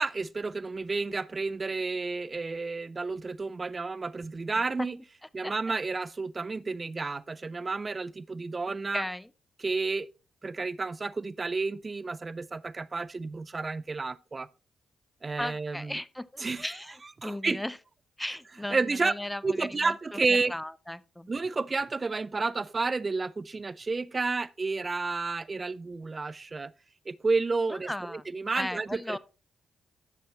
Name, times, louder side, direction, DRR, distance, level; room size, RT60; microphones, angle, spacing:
voice 1, 0.0-5.0 5.3-9.0 9.6-10.1 10.4-14.5 15.2-16.0 16.4-16.7 17.2-17.6 18.7-19.1 19.4-20.5 21.3-26.7 27.1-29.2, right 3 dB, 35° right, 0.4 m, -31 dB
voice 2, 8.9-9.3 15.4-17.0 17.2-17.8 18.2-20.2 20.5-21.3 27.7-28.2 28.5-29.2, left 1 dB, 10° left, 0.6 m, -36 dB
11.5 x 7.0 x 3.1 m
hypercardioid pair, 45°, 0 cm